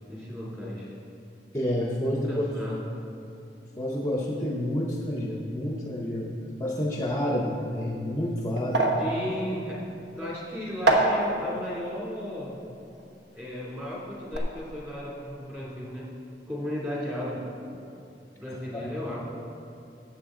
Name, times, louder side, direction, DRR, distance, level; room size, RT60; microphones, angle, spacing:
voice 1, 0.1-0.9 2.1-2.9 9.0-9.8 10.2-12.6 13.3-16.1 16.5-17.5 18.4-19.2, left 1 dB, 10° right, -6 dB, 2.6 m, -35 dB
voice 2, 1.5-2.5 3.8-8.9 18.7-19.0, left 1 dB, 15° left, -2 dB, 0.7 m, -29 dB
sound 1, 7.6-13.8 14.1-14.4, right 2 dB, 65° right, 1.2 m, -29 dB
13.5 x 8.3 x 3.7 m, 2.7 s
head